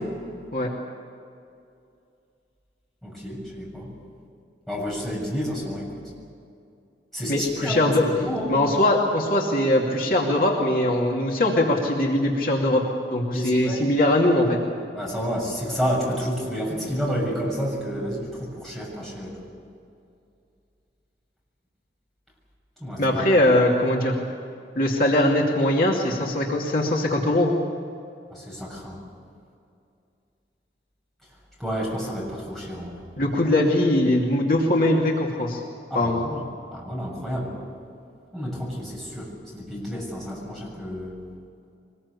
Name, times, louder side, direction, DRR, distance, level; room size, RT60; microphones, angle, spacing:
voice 1, 3.0-3.9 4.7-5.9 7.1-8.5 13.3-13.8 14.9-19.3 22.8-23.2 28.3-29.0 31.6-33.0 35.9-36.4 36.7-37.6 38.3-41.1, equal, ahead, -4 dB, 7.0 m, -30 dB
voice 2, 7.3-8.0 8.5-12.8 13.1-14.6 23.0-24.1 24.7-27.6 33.2-35.6 35.9-36.3, left 1 dB, 50° left, -1 dB, 2.6 m, -21 dB
24.0 x 20.5 x 8.4 m, 2.5 s
head